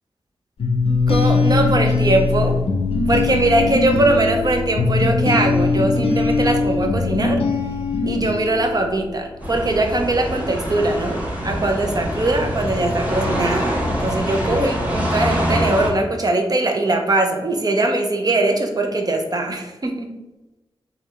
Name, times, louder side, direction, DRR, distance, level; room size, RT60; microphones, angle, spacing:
sound 1, 0.6-9.3, left 3 dB, 70° left, 0.5 m, -20 dB
voice 1, 1.1-2.6 3.1-7.4 8.0-20.1, right 2 dB, 40° right, 4 dB, 0.7 m, -21 dB
sound 2, 9.4-15.9, equal, 15° right, 1.2 m, -24 dB
3.4 x 2.4 x 4.2 m, 1.0 s
cardioid pair, 55°, 10 cm